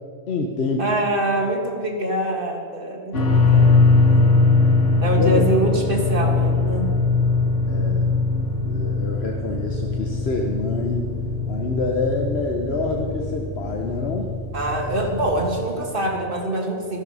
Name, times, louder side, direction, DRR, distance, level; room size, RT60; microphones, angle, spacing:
voice 1, 0.3-1.0 5.2-5.5 7.7-8.1 8.6-11.1 11.5-14.3, left 3 dB, 60° left, 2 dB, 1.2 m, -26 dB
voice 2, 0.8-4.2 5.0-6.9 14.5-17.0, right 1 dB, 50° right, 1 dB, 2.0 m, -24 dB
sound 1, 3.1-15.5, left 3 dB, 90° left, 2.0 m, -21 dB
13.5 x 13.5 x 5.5 m, 2.2 s
omnidirectional pair, 1.2 m